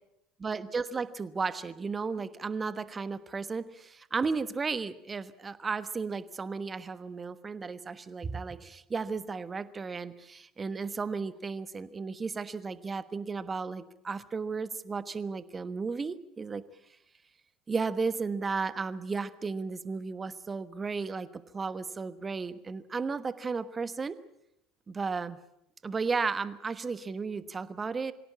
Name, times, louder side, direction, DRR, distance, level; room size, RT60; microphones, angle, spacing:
voice 1, 0.4-16.6 17.7-24.2 24.9-25.4 25.8-28.1, right 4 dB, 25° right, 15 dB, 1.3 m, -34 dB
24.5 x 17.0 x 8.6 m, 0.83 s
figure-of-eight pair, 65°, 0 cm